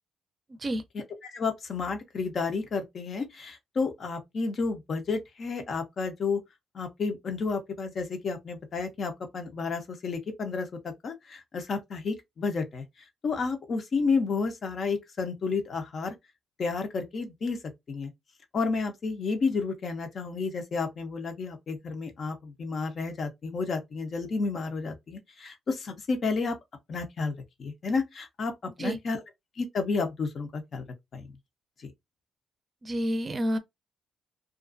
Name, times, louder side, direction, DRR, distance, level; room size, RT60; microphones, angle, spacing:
voice 1, 0.9-6.4 6.7-12.8 13.2-16.1 16.6-17.6 17.9-18.1 18.5-26.6 26.9-28.5 28.8-29.2 29.6-30.8 31.1-31.3 31.8-31.9, left 4 dB, 50° left, 0.7 m, -31 dB
voice 2, 32.8-33.6, equal, 30° right, 0.5 m, -28 dB
2.4 x 2.3 x 2.5 m
cardioid pair, 90°, 0 cm